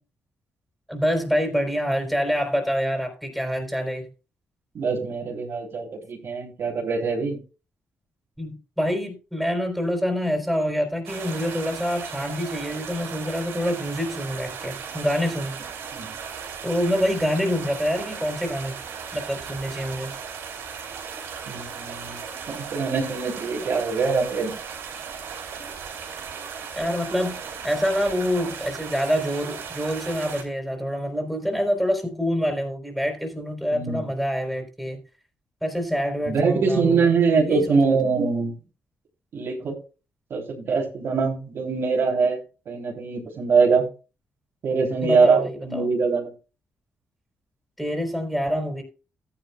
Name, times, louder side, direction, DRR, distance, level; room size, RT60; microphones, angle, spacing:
voice 1, 0.9-4.1 8.4-15.6 16.6-18.8 19.1-20.1 26.7-27.4 27.6-35.0 35.6-37.1 37.4-37.8 45.0-45.8 47.8-48.8, equal, ahead, 4 dB, 4.0 m, -26 dB
voice 2, 4.7-7.4 15.9-16.1 21.5-22.2 22.5-24.5 33.7-34.1 36.2-38.6 39.3-39.8 40.3-42.4 42.6-43.8 44.6-46.3, right 4 dB, 65° right, -1 dB, 3.3 m, -23 dB
sound 1, 11.1-30.4, right 6 dB, 80° right, 3.2 m, -36 dB
13.5 x 10.0 x 2.3 m, 0.34 s
supercardioid pair, 50°, 4 cm